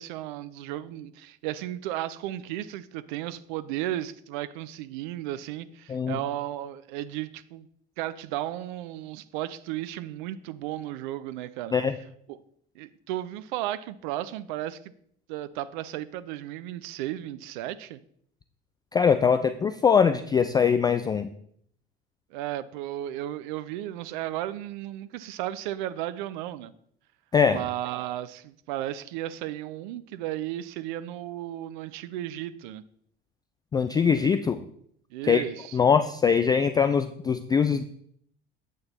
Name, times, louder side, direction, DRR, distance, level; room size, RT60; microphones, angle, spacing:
voice 1, 0.0-7.7 8.0-11.7 12.3-12.4 12.8-14.9 15.3-18.0 22.3-26.7 27.5-32.8 35.1-35.8, right 13 dB, 55° right, 15 dB, 0.5 m, -34 dB
voice 2, 18.9-21.3 27.3-27.6 33.7-34.6 35.3-35.4 35.7-37.8, left 6 dB, 15° left, 11 dB, 0.3 m, -22 dB
8.4 x 6.4 x 4.3 m, 0.66 s
figure-of-eight pair, 65°, 29 cm